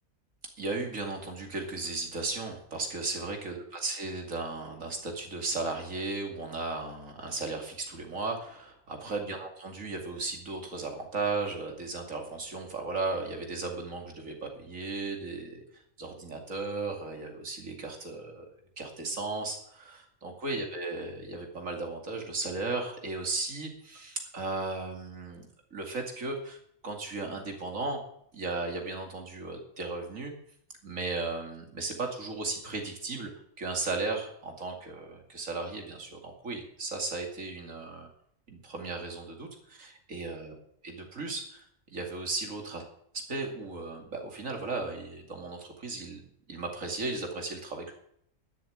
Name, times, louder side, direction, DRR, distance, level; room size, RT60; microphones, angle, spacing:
voice 1, 0.6-15.6 16.0-18.4 18.8-26.6 26.8-28.0 28.3-30.3 30.8-33.3 33.6-38.1 38.5-40.5 41.0-41.7 41.9-42.8 43.1-46.2 46.5-47.9, right 3 dB, 70° right, 3 dB, 2.9 m, -35 dB
12.0 x 7.4 x 9.2 m, 0.70 s
omnidirectional pair, 1.4 m